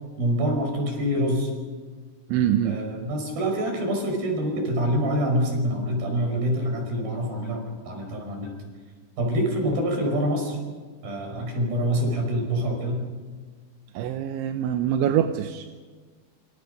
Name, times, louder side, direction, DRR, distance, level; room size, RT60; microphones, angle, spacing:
voice 1, 0.2-1.5 2.7-8.5 9.2-10.6 11.0-13.0, equal, 50° right, 2 dB, 7.0 m, -26 dB
voice 2, 2.3-2.8 13.9-15.7, right 10 dB, 80° right, 8 dB, 3.2 m, -24 dB
27.0 x 26.5 x 5.3 m, 1.4 s
omnidirectional pair, 5.4 m